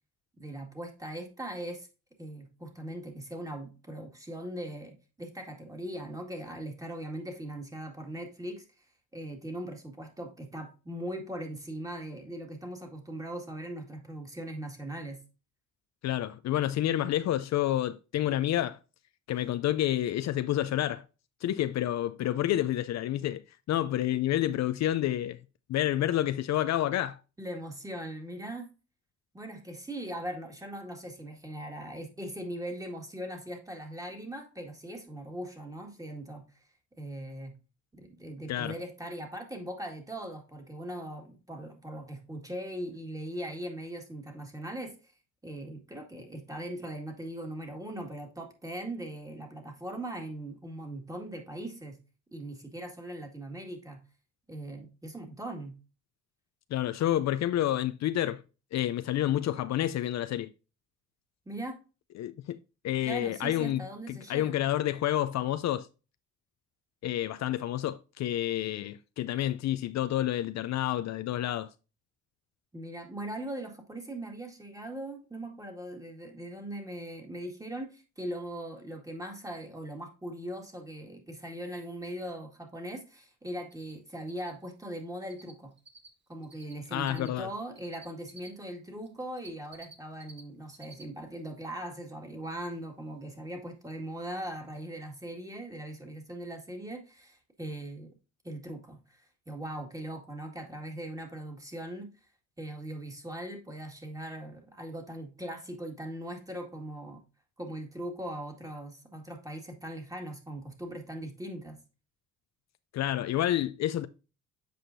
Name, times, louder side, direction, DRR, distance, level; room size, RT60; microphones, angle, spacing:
voice 1, 0.4-1.9 2.2-8.8 9.1-15.2 27.4-28.7 29.3-36.4 37.0-37.6 37.9-45.1 45.4-52.0 52.3-54.0 54.5-55.7 61.5-61.8 63.0-64.6 72.7-85.7 86.3-98.1 98.4-102.1 102.6-107.2 107.6-111.8, right 1 dB, 10° right, 1.9 m, -40 dB
voice 2, 16.0-18.8 19.3-21.0 21.4-25.4 25.7-27.2 38.5-38.7 56.7-58.4 58.7-60.5 62.2-62.6 62.8-65.9 67.0-71.7 86.9-87.5 112.9-114.1, left 12 dB, 60° left, 0.5 m, -29 dB
Cricket, 83.7-83.9 84.2-85.5 85.8-88.5 89.0-90.4 90.7-91.0 91.4-91.5 94.0-94.1 94.5-94.6 94.8-94.9, right 3 dB, 35° right, 1.4 m, -52 dB
7.7 x 5.0 x 2.6 m
cardioid pair, 90°, 30 cm